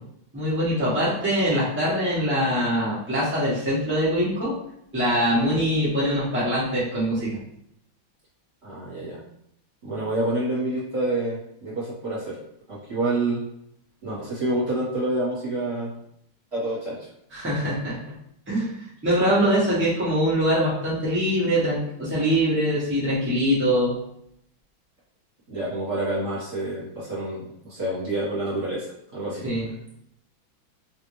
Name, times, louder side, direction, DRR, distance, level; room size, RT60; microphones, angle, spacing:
voice 1, 0.3-4.5 4.9-7.3 17.3-17.9 18.5-18.7 19.0-23.9 29.4-29.7, equal, 15° right, -9 dB, 0.4 m, -23 dB
voice 2, 8.6-9.2 9.8-12.4 12.7-13.4 14.0-15.9 16.5-17.0 25.5-29.4, right 2 dB, 35° right, -9 dB, 1.4 m, -28 dB
3.2 x 2.6 x 3.1 m, 0.73 s
omnidirectional pair, 2.2 m